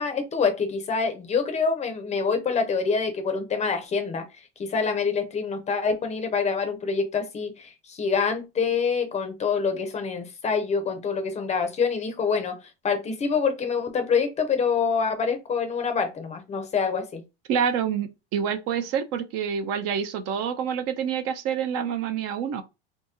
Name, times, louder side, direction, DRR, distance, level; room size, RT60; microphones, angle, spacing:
voice 1, 0.0-4.2 4.6-12.6 12.8-17.2, left 5 dB, 20° left, 0.5 m, -26 dB
voice 2, 17.5-22.6, right 7 dB, 50° right, 0.5 m, -27 dB
2.9 x 2.7 x 3.5 m
supercardioid pair, 140°, 32 cm